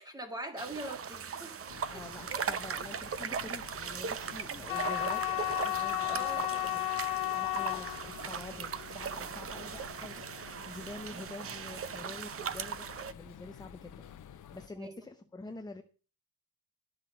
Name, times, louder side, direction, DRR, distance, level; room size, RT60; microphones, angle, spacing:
voice 1, 0.0-1.6 1.9-2.0 2.3-2.5 6.0-6.5 14.8-15.0, right 1 dB, 10° right, 1.8 m, -42 dB
sound 1, 0.6-13.1, right 7 dB, 40° right, 0.7 m, -39 dB
sound 2, 1.7-14.7, left 9 dB, 55° left, 0.9 m, -52 dB
voice 2, 1.8-6.8 7.3-15.8, left 2 dB, 10° left, 0.7 m, -47 dB
sound 3, 4.7-10.8, left 18 dB, 85° left, 0.6 m, -34 dB
12.0 x 6.0 x 7.6 m
wide cardioid pair, 170°, 36 cm